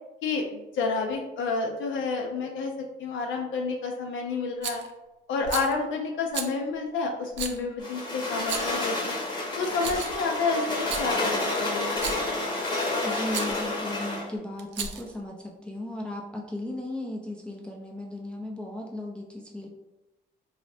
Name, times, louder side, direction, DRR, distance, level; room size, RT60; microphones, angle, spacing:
voice 1, 0.2-2.7 3.0-4.8 5.3-9.2 9.6-12.2, left 4 dB, 75° left, 2 dB, 0.4 m, -29 dB
Rattle, 4.6-4.9 5.4-5.7 6.3-6.5 7.3-7.6 8.4-8.8 9.6-10.3 10.7-11.1 11.9-12.3 13.3-13.5 14.6-15.1, right 6 dB, 65° right, 0.4 m, -34 dB
sound 1, 7.8-14.3, left 2 dB, 20° left, 0.8 m, -29 dB
voice 2, 13.0-19.7, left 1 dB, 5° left, -1 dB, 0.4 m, -36 dB
3.1 x 2.0 x 2.6 m, 1.0 s
cardioid pair, 90°, 20 cm